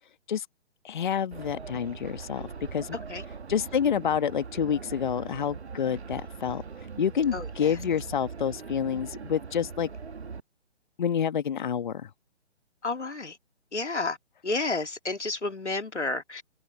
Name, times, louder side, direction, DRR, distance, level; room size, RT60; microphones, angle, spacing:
voice 1, 0.8-3.0 3.5-9.9 11.0-12.1, left 8 dB, 40° left, 1.5 m, -28 dB
sound 1, 1.3-10.4, right 5 dB, 65° right, 1.2 m, -41 dB
voice 2, 7.3-7.8 12.8-13.4 13.7-14.2 14.4-16.4, left 3 dB, 75° left, 2.8 m, -31 dB
open air
figure-of-eight pair, 135°, 35 cm